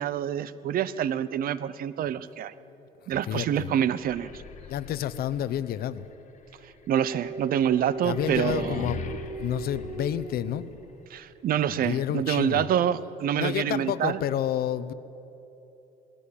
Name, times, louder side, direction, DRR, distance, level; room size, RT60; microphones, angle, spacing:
voice 1, 0.0-2.5 3.1-4.3 6.9-8.9 11.1-14.2, right 9 dB, 60° right, 16 dB, 0.8 m, -26 dB
voice 2, 3.3-3.7 4.7-6.1 8.0-9.0 9.4-10.7 11.7-12.7 13.4-14.9, left 11 dB, 65° left, 14 dB, 0.8 m, -29 dB
sound 1, 3.9-10.8, left 5 dB, 45° left, 1.7 m, -41 dB
sound 2, 7.0-11.1, right 4 dB, 45° right, 1.9 m, -38 dB
19.5 x 16.5 x 8.6 m, 3.0 s
cardioid pair, 110°, 17 cm